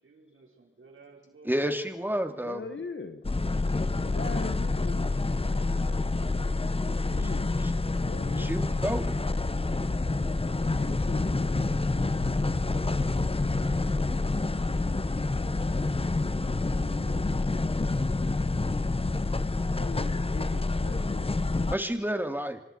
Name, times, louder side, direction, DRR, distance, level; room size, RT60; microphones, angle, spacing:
voice 1, 0.0-1.7 2.0-2.2, right 4 dB, 85° right, 0 dB, 4.9 m, -56 dB
voice 2, 1.4-2.6 8.4-9.2 21.7-22.6, equal, 10° right, 6 dB, 2.6 m, -30 dB
voice 3, 2.4-3.2 4.0-6.1 6.9-8.7 10.7-13.3 19.7-21.9, left 4 dB, 65° left, 7 dB, 1.5 m, -42 dB
sound 1, 3.2-21.8, left 3 dB, 30° left, 0.9 m, -28 dB
26.0 x 22.0 x 4.6 m, 0.94 s
cardioid pair, 45°, 21 cm